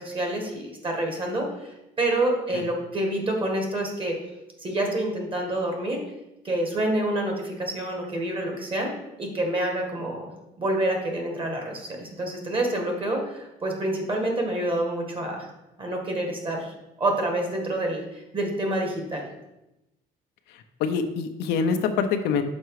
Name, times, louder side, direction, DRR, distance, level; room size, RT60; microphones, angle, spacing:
voice 1, 0.0-4.1 4.6-6.0 6.4-8.9 9.2-10.3 10.6-15.5 15.8-19.3, right 1 dB, 30° right, 2 dB, 1.7 m, -27 dB
voice 2, 20.5-22.4, left 6 dB, 85° left, 6 dB, 0.7 m, -25 dB
6.1 x 4.5 x 4.8 m, 0.95 s
cardioid pair, 110°, 17 cm